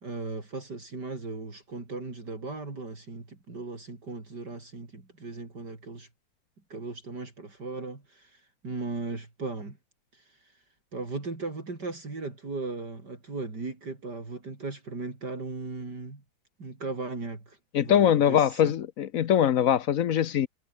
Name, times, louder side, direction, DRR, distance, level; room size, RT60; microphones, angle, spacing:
voice 1, 0.0-6.1 6.7-9.8 10.1-10.6 10.9-16.2 16.6-18.7, right 3 dB, 60° right, 5.1 m, -37 dB
voice 2, 17.7-20.5, left 9 dB, 60° left, 1.0 m, -22 dB
omnidirectional pair, 2.0 m